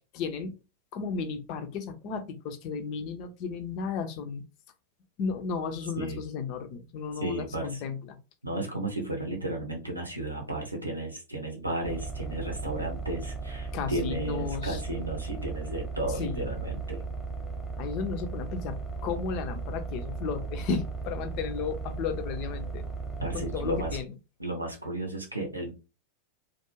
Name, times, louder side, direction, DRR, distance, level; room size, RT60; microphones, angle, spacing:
voice 1, 0.1-0.6 0.9-4.4 5.2-8.2 13.7-14.8 16.1-16.6 17.8-18.8 19.0-22.8 23.3-24.1, left 5 dB, 40° left, 8 dB, 0.4 m, -34 dB
voice 2, 7.2-7.8 8.4-17.0 23.2-24.0 24.4-25.7, right 1 dB, 85° right, 2 dB, 0.7 m, -33 dB
sound 1, 11.8-24.0, right 4 dB, 5° right, 0.8 m, -36 dB
2.3 x 2.1 x 3.0 m, 0.31 s
figure-of-eight pair, 90°, 0 cm